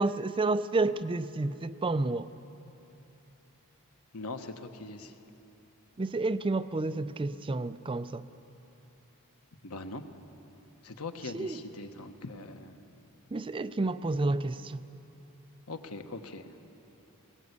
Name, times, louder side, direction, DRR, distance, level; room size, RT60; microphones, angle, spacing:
voice 1, 0.0-2.3 6.0-8.3 11.3-11.6 13.3-14.9, right 3 dB, 25° right, 13 dB, 0.4 m, -30 dB
voice 2, 4.1-5.1 9.6-10.1 10.8-12.8 15.7-16.5, left 3 dB, 85° left, 7 dB, 1.3 m, -41 dB
19.5 x 18.0 x 8.2 m, 3.0 s
head